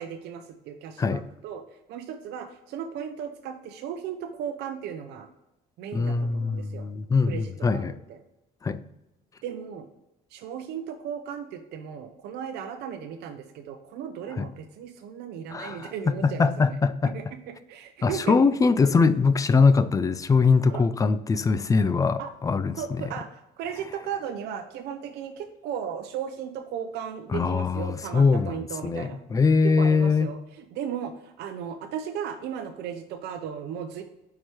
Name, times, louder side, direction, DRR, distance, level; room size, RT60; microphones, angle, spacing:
voice 1, 0.0-1.6 1.9-5.3 5.8-6.9 7.3-8.2 9.4-9.9 10.3-16.8 17.1-18.4 20.7-20.8 22.2-22.3 22.8-29.2 29.6-34.0, right 8 dB, 80° right, 0.6 m, -36 dB
voice 2, 5.9-8.0 8.6-8.8 14.4-14.5 15.5-17.2 18.0-22.8 27.3-30.3, left 4 dB, 20° left, 0.3 m, -22 dB
4.7 x 4.4 x 4.6 m
cardioid pair, 110°, 17 cm